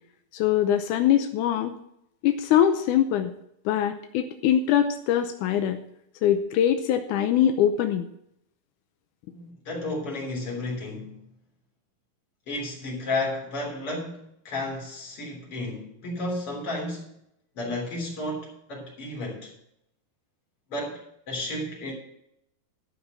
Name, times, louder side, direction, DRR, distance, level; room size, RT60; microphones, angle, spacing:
voice 1, 0.3-1.8 2.2-3.3 3.7-5.8 6.2-8.1, left 10 dB, 80° left, 1.8 m, -23 dB
voice 2, 9.3-11.3 12.5-17.1 17.5-19.5 20.7-21.9, left 2 dB, 35° left, 4.0 m, -32 dB
12.5 x 5.6 x 7.6 m
omnidirectional pair, 4.4 m